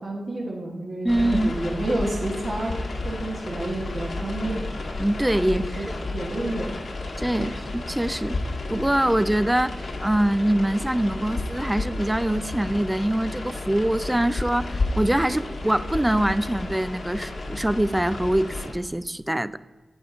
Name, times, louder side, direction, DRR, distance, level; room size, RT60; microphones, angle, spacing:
voice 1, 0.0-2.8 3.0-4.7 5.5-5.8 6.1-6.7 7.3-7.5, right 1 dB, 60° right, -3 dB, 1.4 m, -30 dB
voice 2, 1.0-1.5 5.0-5.9 7.2-8.4 8.7-9.8 10.0-19.6, right 1 dB, 10° right, 16 dB, 0.4 m, -24 dB
sound 1, 1.1-18.7, left 2 dB, 80° left, 1.7 m, -32 dB
8.2 x 7.0 x 5.1 m, 1.2 s
wide cardioid pair, 75°, 0 cm